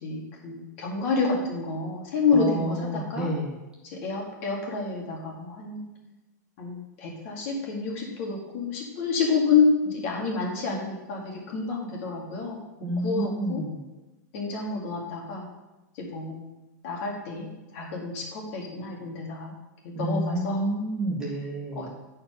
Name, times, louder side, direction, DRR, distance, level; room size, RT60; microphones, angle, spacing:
voice 1, 0.0-3.3 3.9-5.9 6.6-13.6 14.3-15.5 16.0-16.4 16.8-17.5 17.7-19.5 19.8-20.6 21.8-21.9, left 4 dB, 40° left, -1 dB, 2.0 m, -28 dB
voice 2, 2.3-3.5 12.8-13.8 19.9-21.9, right 1 dB, 5° right, -5 dB, 1.2 m, -29 dB
8.6 x 4.5 x 5.6 m, 1.0 s
supercardioid pair, 170°, 10 cm